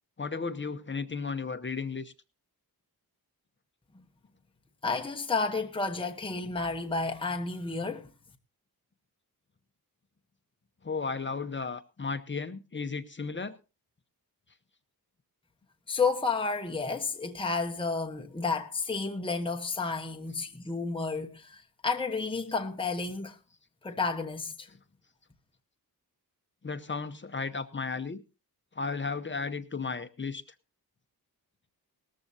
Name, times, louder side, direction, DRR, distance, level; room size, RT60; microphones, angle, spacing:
voice 1, 0.2-2.1 10.8-13.6 26.6-28.2 28.7-30.4, left 4 dB, 30° left, 0.8 m, -34 dB
voice 2, 4.8-8.1 15.9-23.4 23.8-24.7, left 4 dB, 15° left, 1.0 m, -31 dB
19.0 x 14.0 x 2.7 m
wide cardioid pair, 170°, 37 cm